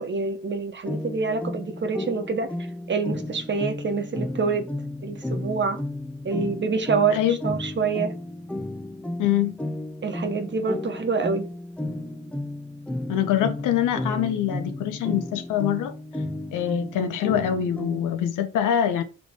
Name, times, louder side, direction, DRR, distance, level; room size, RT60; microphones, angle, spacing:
voice 1, 0.0-2.5 2.9-4.7 5.0-5.8 6.2-8.2 10.0-11.5, right 4 dB, 40° right, 1.2 m, -26 dB
sound 1, 0.9-18.3, left 1 dB, 5° left, 0.5 m, -33 dB
voice 2, 9.2-9.6 13.1-15.9 16.5-19.0, left 10 dB, 85° left, 1.0 m, -24 dB
6.1 x 3.2 x 5.1 m
cardioid pair, 90°, 30 cm